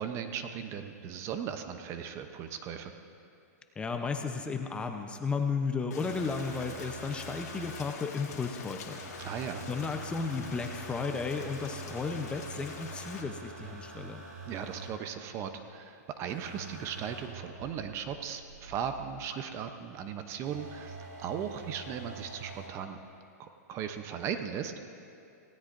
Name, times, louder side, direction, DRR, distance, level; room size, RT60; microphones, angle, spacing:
voice 1, 0.0-2.9 9.2-9.6 14.4-23.0 23.4-24.7, right 8 dB, 30° right, 7 dB, 0.7 m, -37 dB
voice 2, 3.8-9.0 9.7-14.2, left 4 dB, 10° left, 5 dB, 0.7 m, -34 dB
Rain, 5.9-13.2, left 6 dB, 70° left, 1.9 m, -45 dB
sound 1, 6.0-7.9 8.9-14.9 16.3-19.3 20.4-22.7 23.9-24.0, right 3 dB, 80° right, 3.0 m, -46 dB
18.5 x 16.5 x 2.6 m, 2.7 s
hypercardioid pair, 140°, 9 cm